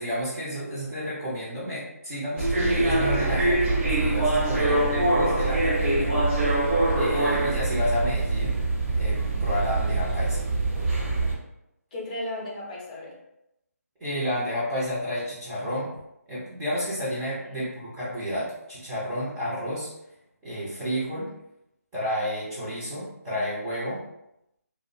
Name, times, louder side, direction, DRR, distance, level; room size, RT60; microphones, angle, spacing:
voice 1, 0.0-3.6 3.9-6.7 6.9-8.6 8.9-10.4 14.0-15.9 16.3-19.9 20.4-21.3 21.9-24.0, equal, 10° right, -11 dB, 0.5 m, -31 dB
sound 1, 2.4-11.3, right 2 dB, 50° right, 0.8 m, -24 dB
voice 2, 4.4-5.0 11.9-13.2 17.3-17.7, left 1 dB, 30° left, -4 dB, 0.6 m, -37 dB
2.4 x 2.0 x 2.6 m, 0.83 s
figure-of-eight pair, 160°, 9 cm